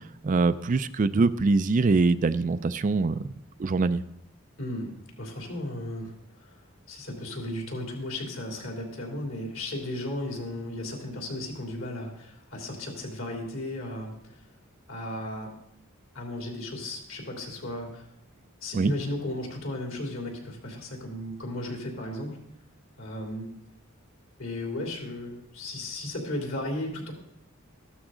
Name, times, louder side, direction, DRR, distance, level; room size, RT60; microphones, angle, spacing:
voice 1, 0.2-3.3 3.6-4.0 18.7-18.9, right 3 dB, 35° right, 13 dB, 0.4 m, -23 dB
voice 2, 4.6-6.6 6.9-14.1 14.9-15.5 16.1-18.1 18.6-22.4 23.0-23.5 24.4-27.1, left 1 dB, 65° left, 0 dB, 3.2 m, -35 dB
14.5 x 12.5 x 3.8 m, 0.76 s
head